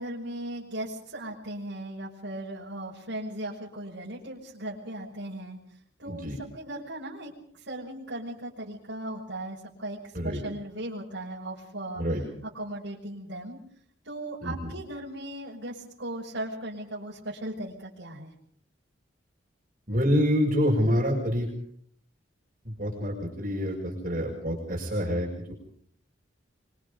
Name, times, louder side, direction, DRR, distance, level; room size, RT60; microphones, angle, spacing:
voice 1, 0.0-5.6 6.0-12.0 12.4-13.6 14.0-18.3, right 1 dB, 75° right, -6 dB, 6.1 m, -37 dB
voice 2, 6.1-6.4 10.1-10.4 12.0-12.2 14.4-14.7 19.9-21.5 22.6-25.5, equal, 45° right, -3 dB, 6.5 m, -27 dB
25.5 x 25.0 x 5.3 m, 0.63 s
head